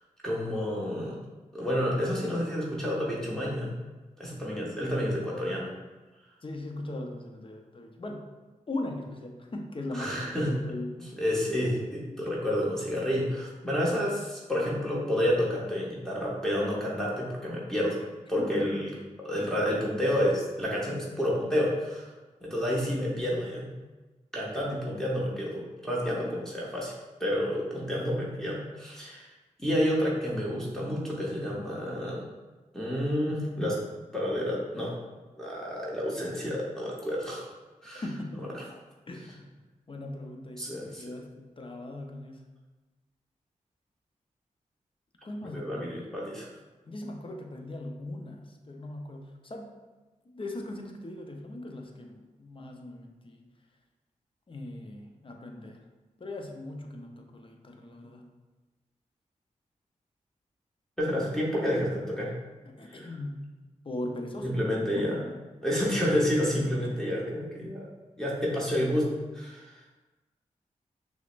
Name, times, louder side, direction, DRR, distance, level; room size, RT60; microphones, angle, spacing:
voice 1, 0.2-1.2 1.5-3.7 4.2-5.7 9.9-10.5 11.2-18.0 18.3-18.9 19.2-22.1 22.4-23.7 24.3-26.9 27.2-29.3 29.6-32.3 32.7-33.8 34.1-35.0 35.4-37.5 37.8-38.0 40.6-41.0 45.5-46.5 61.0-62.3 62.9-63.1 64.4-65.1 65.6-67.9 68.2-69.7, equal, 5° left, -5 dB, 0.9 m, -29 dB
voice 2, 6.4-8.2 8.7-11.0 18.4-18.9 37.9-38.7 39.1-39.5 39.9-42.5 45.2-46.1 46.8-49.8 50.3-53.4 54.5-55.8 56.2-58.3 62.7-63.6 63.8-64.5 65.0-65.4 66.8-67.0, left 1 dB, 40° left, 3 dB, 0.6 m, -39 dB
6.0 x 2.1 x 2.5 m, 1.2 s
cardioid pair, 45°, 14 cm